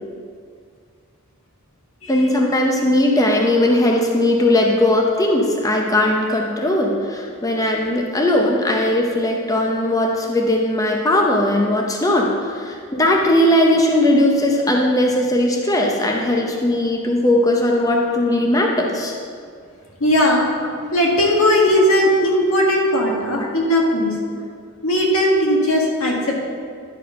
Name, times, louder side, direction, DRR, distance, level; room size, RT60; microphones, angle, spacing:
voice 1, 2.1-19.1 23.4-23.5, left 1 dB, 15° left, 0 dB, 0.7 m, -18 dB
voice 2, 20.0-20.5 20.9-24.1 24.8-26.3, equal, 80° left, -2 dB, 1.7 m, -17 dB
11.0 x 4.4 x 5.5 m, 2.1 s
head